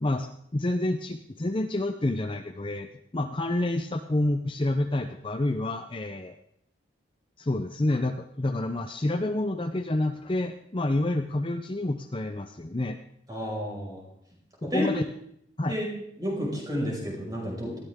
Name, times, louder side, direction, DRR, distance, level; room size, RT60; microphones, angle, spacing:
voice 1, 0.0-2.9 3.1-6.4 7.4-13.0 14.6-15.0 15.6-15.8, left 1 dB, 25° left, 7 dB, 0.6 m, -28 dB
voice 2, 13.3-14.0 14.6-14.9 15.7-15.9 16.2-17.8, equal, 20° right, -3 dB, 5.5 m, -31 dB
19.0 x 14.5 x 3.7 m, 0.72 s
head